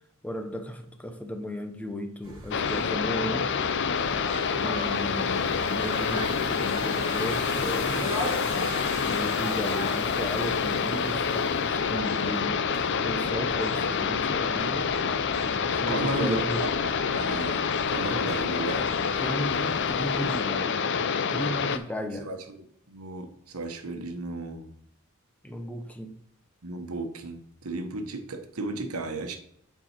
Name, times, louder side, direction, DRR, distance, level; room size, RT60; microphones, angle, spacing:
voice 1, 0.2-3.6 4.6-8.4 9.0-14.9 15.7-16.6 19.2-21.0 21.3-22.3 25.4-26.2, equal, 5° left, 0.8 m, -35 dB
sound 1, 2.2-20.4, right 1 dB, 20° right, 2.6 m, -39 dB
sound 2, 2.5-21.8, left 6 dB, 55° left, 0.5 m, -27 dB
voice 2, 15.9-16.4 16.8-18.9 22.1-24.7 26.6-29.4, right 2 dB, 90° right, 1.1 m, -34 dB
8.4 x 4.6 x 4.4 m
head